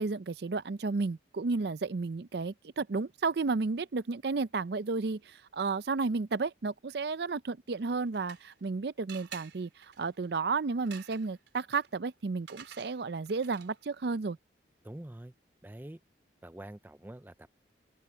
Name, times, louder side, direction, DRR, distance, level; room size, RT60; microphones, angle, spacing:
voice 1, 0.0-14.4, right 4 dB, 60° right, 0.5 m, -32 dB
sound 1, 7.8-8.7 9.1-13.9, right 8 dB, 80° right, 4.1 m, -51 dB
voice 2, 14.8-15.3 15.6-16.0 16.4-17.5, right 1 dB, 10° right, 0.5 m, -46 dB
open air
head